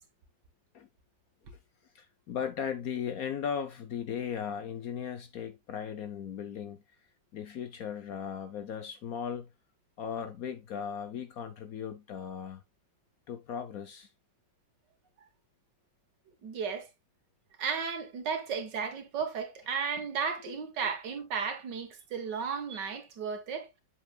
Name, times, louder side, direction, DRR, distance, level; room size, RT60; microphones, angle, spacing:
voice 1, 1.9-6.8 7.3-9.5 10.0-12.6 13.3-14.1 20.5-20.6 22.3-22.4, left 8 dB, 65° left, 1.0 m, -37 dB
voice 2, 16.4-16.9 17.6-23.7, right 6 dB, 70° right, 1.9 m, -34 dB
7.8 x 6.9 x 2.3 m
omnidirectional pair, 2.0 m